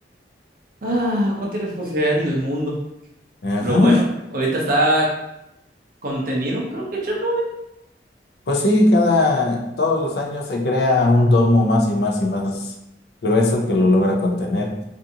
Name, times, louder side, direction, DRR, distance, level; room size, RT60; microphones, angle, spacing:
voice 1, 0.8-2.8 3.6-4.1 4.3-5.1 6.0-7.4, right 1 dB, 50° right, -3 dB, 0.5 m, -22 dB
voice 2, 3.4-4.0 8.5-12.7 13.2-14.8, left 2 dB, 60° left, 1 dB, 0.4 m, -18 dB
2.5 x 2.5 x 2.6 m, 0.86 s
head